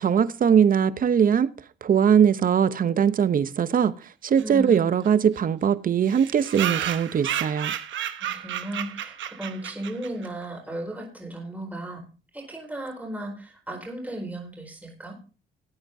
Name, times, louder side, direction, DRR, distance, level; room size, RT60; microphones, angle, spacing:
voice 1, 0.0-1.5 1.8-3.9 4.2-7.7, right 8 dB, 45° right, 0.7 m, -21 dB
voice 2, 4.4-4.8 8.2-12.0 12.3-15.2, right 1 dB, 10° right, 4.4 m, -35 dB
sound 1, 4.4-4.5 4.7-4.8 5.0-5.1 5.3-5.4 6.1-10.3, right 11 dB, 70° right, 1.0 m, -32 dB
19.0 x 8.9 x 2.7 m
cardioid pair, 90°, 20 cm